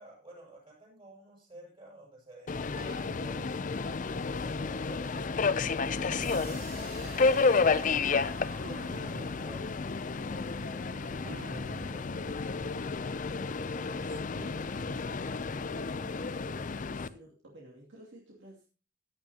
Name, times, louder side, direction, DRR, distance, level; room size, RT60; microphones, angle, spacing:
voice 1, 0.0-3.7 4.4-5.3 5.8-9.7 10.3-12.2, right 1 dB, 25° right, -2 dB, 6.8 m, -52 dB
Subway metro underground, 2.5-17.1, left 4 dB, 40° left, 0.5 m, -31 dB
sound 1, 2.8-4.1 6.0-7.1 8.6-9.7 11.3-13.9, right 3 dB, 45° right, 0.7 m, -49 dB
sound 2, 6.2-12.1, right 4 dB, 90° right, 5.1 m, -52 dB
voice 2, 12.9-13.4 13.8-15.3 15.6-18.9, right 1 dB, 65° right, -3 dB, 2.6 m, -53 dB
16.0 x 10.0 x 2.9 m, 0.34 s
head